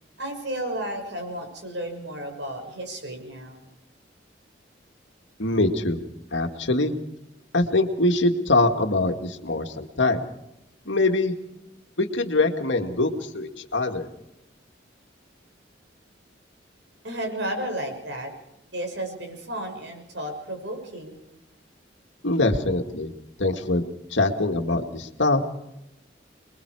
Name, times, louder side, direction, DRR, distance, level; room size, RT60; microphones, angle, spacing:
voice 1, 0.2-3.7 17.0-18.3 18.7-21.2, right 1 dB, 70° right, 4 dB, 6.1 m, -33 dB
voice 2, 5.4-6.0 6.3-6.9 7.5-10.2 10.9-11.3 12.0-14.1 22.2-23.1 23.4-23.8 24.1-25.4, left 2 dB, 80° left, 5 dB, 2.2 m, -23 dB
27.0 x 22.0 x 4.9 m, 0.86 s
head